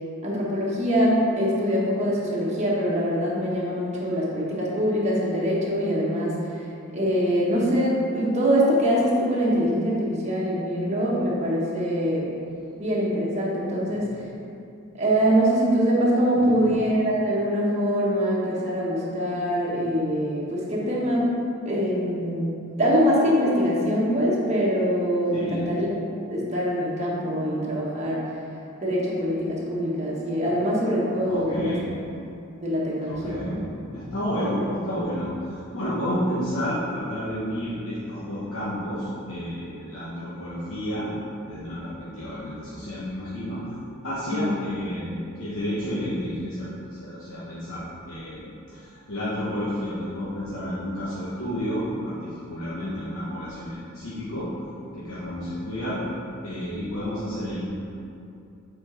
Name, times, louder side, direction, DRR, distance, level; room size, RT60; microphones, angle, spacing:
voice 1, 0.2-6.7 6.9-12.3 12.8-14.1 15.0-21.3 21.6-22.5 22.8-25.9 26.3-28.2 28.8-31.8 32.6-33.6 34.4-34.7 44.3-44.5, equal, 30° right, -5 dB, 1.4 m, -23 dB
voice 2, 25.3-25.7 31.3-31.8 33.1-41.1 41.5-43.7 44.0-54.5 54.9-56.0 56.4-57.7, equal, 65° left, -10 dB, 1.3 m, -31 dB
7.4 x 4.5 x 4.4 m, 2.6 s
head